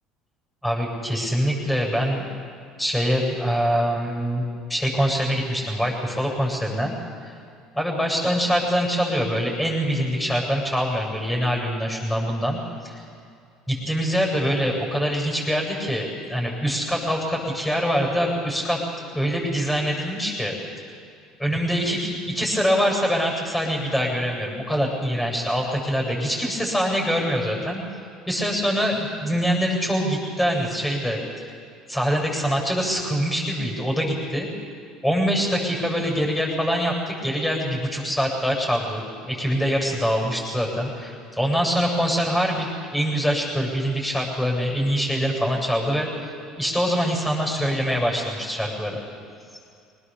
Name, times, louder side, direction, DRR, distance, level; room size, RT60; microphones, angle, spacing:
voice 1, 0.6-2.3 2.8-4.4 4.7-6.9 7.2-7.3 7.7-13.0 13.7-20.5 21.4-27.8 28.3-31.2 31.9-34.5 35.0-46.1 46.6-49.0, equal, 10° left, 0 dB, 7.9 m, -24 dB
25.0 x 19.5 x 7.2 m, 2.5 s
hypercardioid pair, 70°, 0 cm